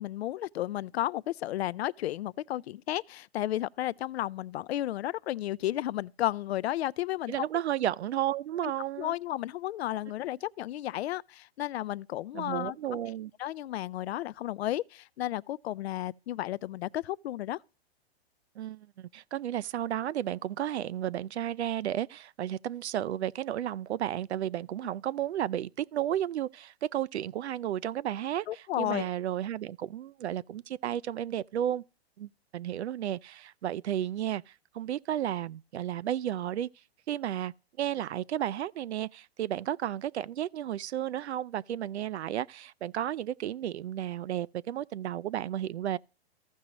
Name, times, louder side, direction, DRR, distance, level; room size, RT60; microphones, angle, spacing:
voice 1, 0.0-7.3 8.6-8.7 9.0-13.0 13.4-17.6 28.5-29.1, left 14 dB, 75° left, 0.5 m, -33 dB
voice 2, 7.3-9.1 12.3-13.3 18.6-31.8 32.2-36.7 37.1-46.0, right 11 dB, 90° right, 0.5 m, -33 dB
15.0 x 6.2 x 2.9 m
hypercardioid pair, 135°, 32 cm